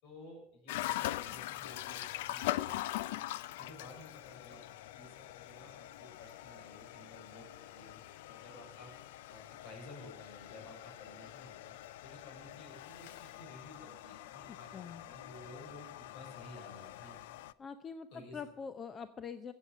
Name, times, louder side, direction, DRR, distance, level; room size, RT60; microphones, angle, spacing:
voice 1, 0.0-3.2 3.6-4.6 4.9-8.0 8.3-8.9 9.3-11.8 12.0-15.9 16.1-17.2 18.1-18.4, left 2 dB, 70° left, 2 dB, 6.6 m, -53 dB
sound 1, 0.7-17.5, left 15 dB, 85° left, 0.4 m, -43 dB
voice 2, 14.5-15.0 17.6-19.5, left 6 dB, 35° left, 11 dB, 0.8 m, -44 dB
15.0 x 8.4 x 6.7 m, 0.75 s
supercardioid pair, 100°, 0 cm